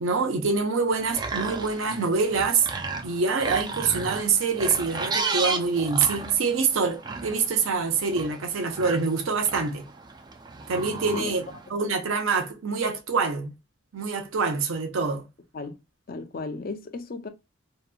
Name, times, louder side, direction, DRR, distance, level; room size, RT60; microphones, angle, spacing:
voice 1, 0.0-2.7 3.0-9.9 10.7-11.4 11.7-13.5 13.9-15.2, right 5 dB, 70° right, 0.6 m, -25 dB
sound 1, 0.9-11.7, right 4 dB, 20° right, 0.3 m, -34 dB
voice 2, 16.1-17.3, left 3 dB, 45° left, 0.4 m, -35 dB
2.8 x 2.2 x 2.4 m
head